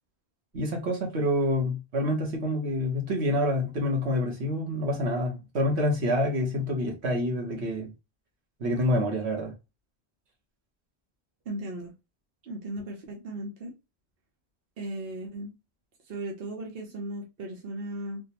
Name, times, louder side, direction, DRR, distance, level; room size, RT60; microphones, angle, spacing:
voice 1, 0.5-7.9 8.6-9.5, left 1 dB, 85° right, 1.4 m, -27 dB
voice 2, 11.5-11.9 12.4-13.7 14.8-15.5 16.1-18.2, right 1 dB, 65° right, 1.0 m, -36 dB
3.5 x 2.2 x 2.8 m
omnidirectional pair, 1.1 m